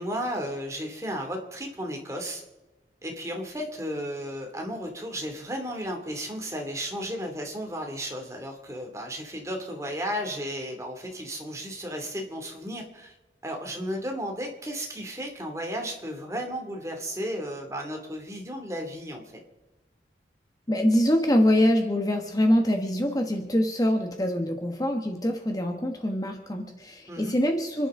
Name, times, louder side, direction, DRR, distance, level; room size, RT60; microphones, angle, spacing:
voice 1, 0.0-2.4 3.0-13.1 13.4-19.4 27.1-27.3, equal, 15° right, 2 dB, 2.6 m, -34 dB
voice 2, 20.7-27.9, equal, 20° left, 4 dB, 1.2 m, -24 dB
29.5 x 11.0 x 3.8 m, 1.1 s
head